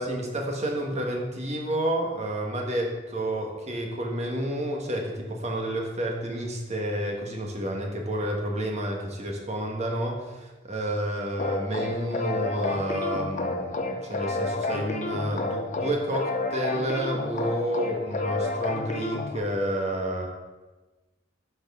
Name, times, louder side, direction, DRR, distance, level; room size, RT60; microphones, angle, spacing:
voice 1, 0.0-20.3, right 1 dB, 35° right, 1 dB, 1.4 m, -30 dB
sound 1, 11.4-19.4, left 2 dB, 40° left, 0.7 m, -30 dB
11.5 x 6.0 x 3.7 m, 1.2 s
head